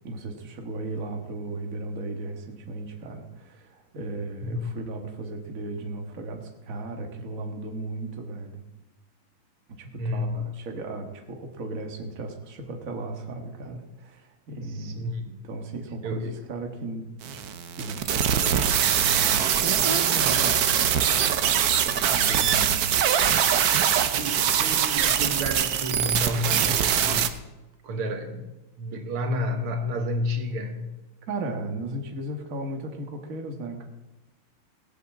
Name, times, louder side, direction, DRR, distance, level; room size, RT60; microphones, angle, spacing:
voice 1, 0.0-8.6 9.7-15.1 15.4-17.4 17.7-23.1 31.3-33.9, right 2 dB, 40° right, 3 dB, 1.7 m, -36 dB
voice 2, 4.4-4.7 10.0-10.6 14.7-15.5 16.0-16.4 23.8-27.4 27.8-28.5 28.8-31.0, left 1 dB, 80° right, 6 dB, 2.2 m, -31 dB
sound 1, 17.2-27.3, right 9 dB, 60° right, 1.1 m, -23 dB
17.5 x 8.2 x 7.3 m, 1.0 s
omnidirectional pair, 2.4 m